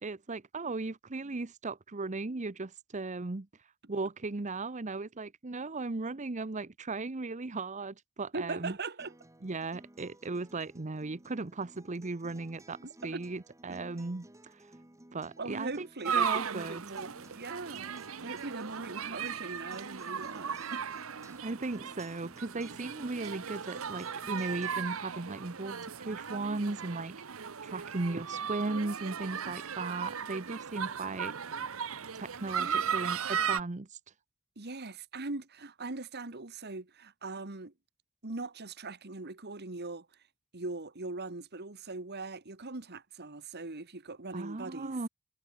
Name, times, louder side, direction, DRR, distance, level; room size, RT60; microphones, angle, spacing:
voice 1, 0.0-3.5 3.9-8.8 9.4-14.7 15.1-16.8 21.4-31.4 32.1-33.9 44.3-45.1, right 3 dB, 35° right, 0.8 m, -37 dB
voice 2, 8.3-9.1 12.8-13.2 13.7-13.8 15.4-20.9 32.5-33.0 34.5-37.7 38.2-40.1 40.5-44.9, right 3 dB, 50° right, 1.8 m, -41 dB
Acoustic guitar, 9.0-25.0, right 1 dB, 15° right, 1.6 m, -57 dB
sound 1, 16.0-33.6, right 7 dB, 75° right, 0.9 m, -36 dB
head